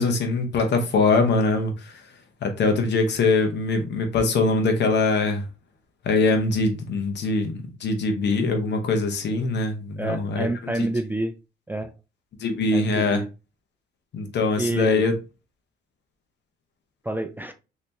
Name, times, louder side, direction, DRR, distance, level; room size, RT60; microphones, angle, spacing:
voice 1, 0.0-1.9 2.4-5.4 6.0-10.9 12.4-13.2 14.1-15.1, left 3 dB, 60° left, 0.9 m, -23 dB
voice 2, 10.0-11.4 11.7-11.9 12.7-13.3 14.6-15.0 17.0-17.5, right 2 dB, 10° right, 0.3 m, -28 dB
3.3 x 2.8 x 2.8 m
cardioid pair, 90°, 20 cm